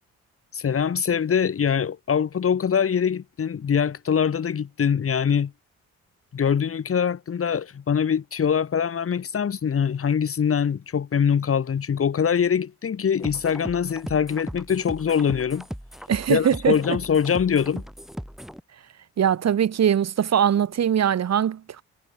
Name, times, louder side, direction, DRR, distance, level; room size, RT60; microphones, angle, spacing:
voice 1, 0.5-5.5 6.3-15.7 16.3-17.8, left 7 dB, 50° left, 3.7 m, -23 dB
sound 1, 13.2-18.6, equal, ahead, 6.1 m, -37 dB
voice 2, 16.1-16.8 19.2-21.8, right 9 dB, 60° right, 6.1 m, -21 dB
cardioid pair, 90°, 30 cm